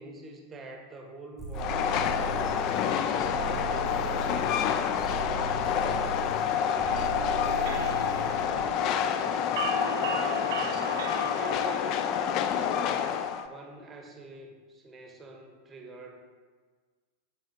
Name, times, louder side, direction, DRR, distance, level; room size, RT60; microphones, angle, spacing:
voice 1, 0.0-2.6 3.1-6.0 6.4-8.1 8.3-10.8 11.3-13.2 13.5-16.2, right 2 dB, 20° right, 2 dB, 0.8 m, -46 dB
sound 1, 1.4-8.6, right 4 dB, 15° left, 1.6 m, -38 dB
Train, 1.5-13.5, left 8 dB, 40° left, 0.3 m, -28 dB
sound 2, 6.7-11.8, right 8 dB, 55° right, 0.3 m, -38 dB
7.4 x 5.0 x 2.6 m, 1.5 s
figure-of-eight pair, 90°, 0 cm